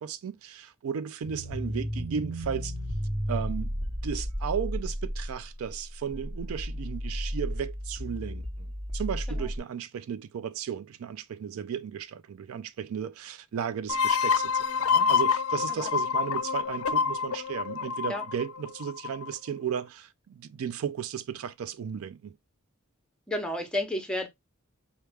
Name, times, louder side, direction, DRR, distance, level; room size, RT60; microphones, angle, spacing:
voice 1, 0.0-2.7 3.3-3.7 4.0-8.7 8.9-22.4, right 7 dB, 75° right, 0.4 m, -35 dB
sound 1, 1.2-9.6, equal, 30° right, 0.9 m, -33 dB
sound 2, 13.9-19.3, left 6 dB, 80° left, 0.4 m, -27 dB
voice 2, 23.3-24.3, left 1 dB, 5° left, 0.8 m, -32 dB
4.5 x 2.2 x 3.4 m
head